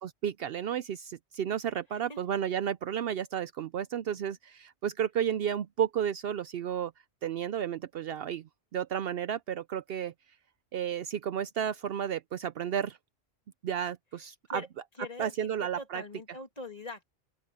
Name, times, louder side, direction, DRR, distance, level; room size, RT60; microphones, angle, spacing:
voice 1, 0.0-6.9 7.2-8.4 8.7-10.1 10.7-13.0 13.6-14.6 15.2-16.0, right 9 dB, 65° right, 0.7 m, -32 dB
voice 2, 1.9-2.2 14.2-14.7 14.9-15.5 15.8-17.0, left 2 dB, 35° left, 2.6 m, -43 dB
open air
omnidirectional pair, 1.2 m